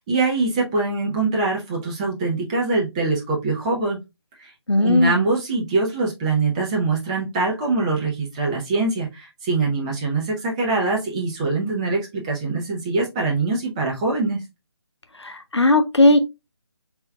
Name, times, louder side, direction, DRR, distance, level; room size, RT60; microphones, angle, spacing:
voice 1, 0.0-4.0 4.4-4.5 4.8-14.4, right 3 dB, 15° right, 0.7 m, -23 dB
voice 2, 4.7-5.2 15.2-16.2, left 2 dB, 80° left, 0.7 m, -17 dB
4.3 x 3.6 x 2.2 m
figure-of-eight pair, 150°, 14 cm